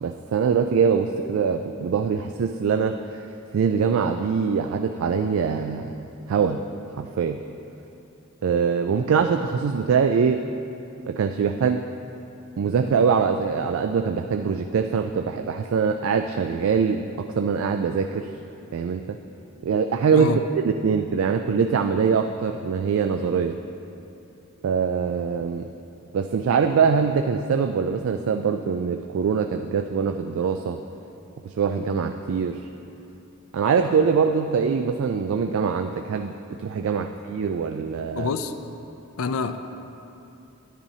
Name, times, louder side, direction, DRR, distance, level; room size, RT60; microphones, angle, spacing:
voice 1, 0.0-3.2 3.5-5.9 6.3-6.6 7.0-7.4 8.4-10.4 11.0-11.8 12.6-18.3 18.7-19.2 19.6-23.6 24.6-25.7 26.1-30.8 31.4-32.7 33.5-38.3, right 6 dB, 65° right, 6 dB, 0.3 m, -23 dB
voice 2, 20.1-20.4 38.1-38.5 39.2-39.6, left 5 dB, 70° left, 9 dB, 0.4 m, -26 dB
10.0 x 10.0 x 2.7 m, 2.8 s
head